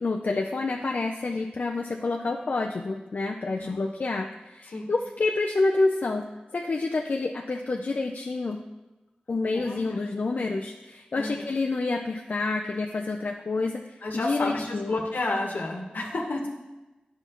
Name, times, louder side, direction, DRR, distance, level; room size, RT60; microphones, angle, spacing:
voice 1, 0.0-6.3 6.5-8.6 9.3-14.9, left 3 dB, 60° left, 1 dB, 0.5 m, -28 dB
voice 2, 9.5-10.0 11.1-11.5 14.0-16.4, left 2 dB, 75° left, 1 dB, 1.2 m, -31 dB
9.9 x 5.6 x 3.0 m, 1.1 s
cardioid pair, 45°, 3 cm